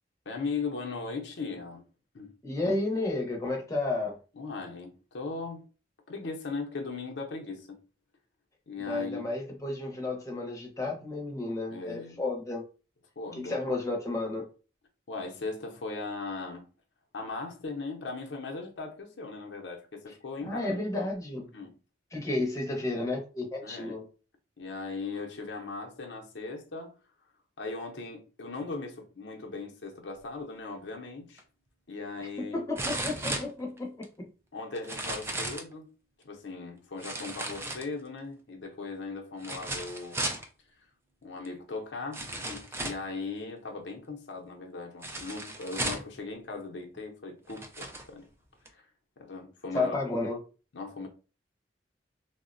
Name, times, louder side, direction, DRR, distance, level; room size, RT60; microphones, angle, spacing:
voice 1, 0.3-1.9 2.1-2.3 4.4-5.7 6.1-7.8 8.7-9.3 11.7-12.2 13.2-13.6 15.1-16.7 17.1-21.1 21.5-21.8 23.6-24.0 24.6-26.9 27.6-31.4 31.9-32.6 34.5-35.9 36.2-40.3 40.7-40.9 41.2-48.3 48.6-48.9 49.2-50.0 50.7-51.1, left 3 dB, 75° left, 0.6 m, -38 dB
voice 2, 2.4-4.2 8.9-12.6 13.4-14.5 20.4-21.5 22.1-24.0 32.4-34.3 49.7-50.4, left 2 dB, 20° left, 0.7 m, -32 dB
sound 1, 31.4-31.5 32.7-34.0 34.8-35.7 37.0-38.2 39.4-40.5 41.4-41.5 42.1-43.1 45.0-46.2 47.0-47.1 47.5-48.1 48.6-48.7, right 2 dB, 15° right, 0.4 m, -35 dB
3.6 x 2.0 x 2.5 m
head